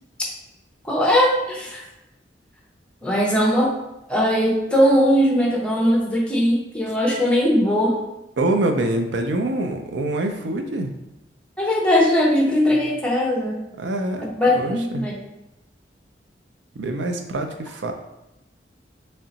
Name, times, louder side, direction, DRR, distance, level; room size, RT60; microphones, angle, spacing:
voice 1, 0.8-1.8 3.0-3.7 4.1-8.0 11.6-13.7 14.4-15.2, equal, 5° left, -2 dB, 0.7 m, -19 dB
voice 2, 8.4-10.9 13.8-14.3 14.5-15.1 16.8-17.9, right 1 dB, 80° right, 5 dB, 0.5 m, -25 dB
3.2 x 2.8 x 3.9 m, 0.93 s
head